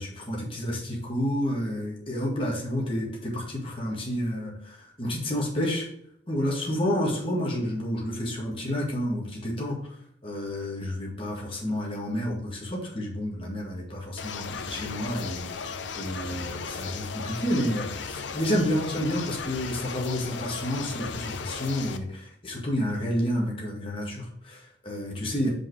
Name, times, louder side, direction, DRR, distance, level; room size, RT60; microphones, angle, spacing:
voice 1, 0.0-5.9 6.3-10.0 10.2-25.5, equal, 30° left, -2 dB, 1.9 m, -30 dB
sound 1, 14.2-22.0, left 5 dB, 75° left, 0.6 m, -36 dB
5.6 x 5.1 x 5.0 m, 0.72 s
head